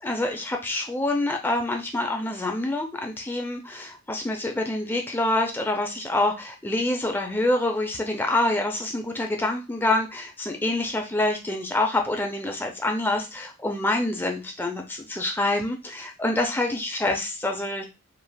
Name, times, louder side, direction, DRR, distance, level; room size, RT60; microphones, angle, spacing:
voice 1, 0.0-17.8, left 2 dB, 10° left, 3 dB, 0.3 m, -26 dB
3.3 x 2.4 x 2.2 m, 0.27 s
head